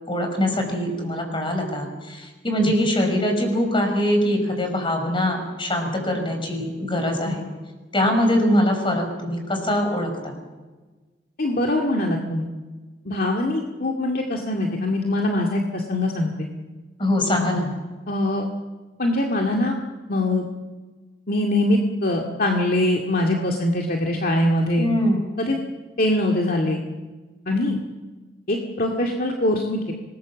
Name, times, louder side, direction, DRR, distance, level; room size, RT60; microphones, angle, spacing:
voice 1, 0.1-7.4 7.9-10.4 17.0-17.7 24.8-25.2, left 1 dB, 30° left, 4 dB, 5.8 m, -23 dB
voice 2, 11.4-12.5 13.1-16.5 17.4-17.6 18.1-18.5 19.0-19.8 20.1-20.4 21.3-24.9 25.4-25.6 26.0-26.8 27.5-27.8 28.5-29.9, left 1 dB, 55° left, 0 dB, 2.2 m, -23 dB
26.0 x 20.0 x 7.5 m, 1.3 s
head